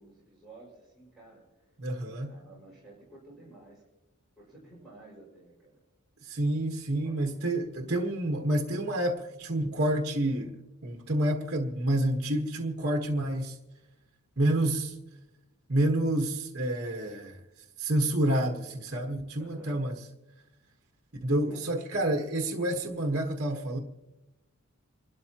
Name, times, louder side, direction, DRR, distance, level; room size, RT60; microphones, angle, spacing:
voice 1, 0.0-1.4 1.9-3.8 4.4-5.8 6.2-6.4 7.0-7.1 19.4-19.8 21.4-21.7, right 2 dB, ahead, 5.7 m, -52 dB
voice 2, 1.8-2.3 6.2-13.6 14.4-14.9 15.7-17.4 17.8-19.9 21.2-23.8, right 1 dB, 50° right, 1.3 m, -28 dB
28.0 x 13.0 x 2.9 m
head